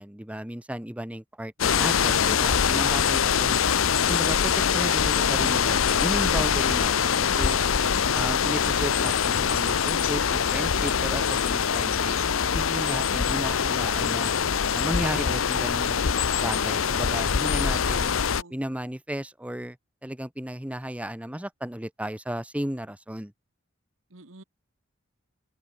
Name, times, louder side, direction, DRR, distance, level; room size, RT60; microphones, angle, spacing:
voice 1, 0.0-3.6 4.1-7.6 8.1-12.2 12.5-14.3 14.7-16.1 16.4-18.1 18.5-19.8 20.0-23.3, equal, 5° right, 1.1 m, -34 dB
sound 1, 1.6-18.4, left 7 dB, 90° left, 0.7 m, -24 dB
voice 2, 1.6-2.5 17.7-18.6 24.1-24.4, right 3 dB, 80° right, 1.8 m, -48 dB
open air
head